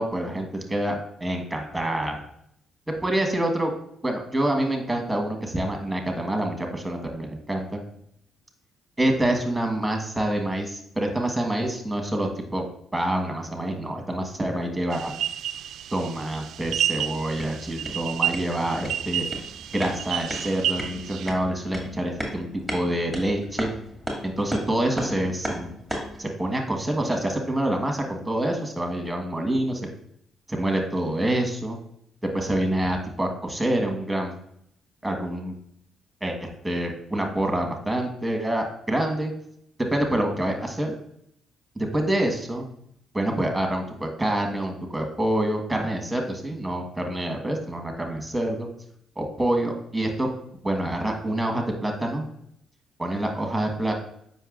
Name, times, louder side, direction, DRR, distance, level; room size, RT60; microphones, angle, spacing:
voice 1, 0.0-2.2 3.0-3.7 4.0-7.8 9.0-12.6 12.9-15.1 15.9-19.3 19.7-23.7 24.2-25.7 26.2-29.8 30.5-31.8 32.2-34.3 35.0-35.5 36.2-39.3 39.8-40.9 41.8-42.6 43.1-48.7 49.2-50.3 50.6-52.2 53.0-53.9, right 1 dB, 10° right, 3 dB, 1.4 m, -26 dB
sound 1, 14.9-21.3, right 11 dB, 75° right, 0.3 m, -30 dB
sound 2, 17.1-26.2, equal, 10° left, 2.1 m, -36 dB
7.6 x 5.5 x 2.5 m, 0.72 s
cardioid pair, 90°, 0 cm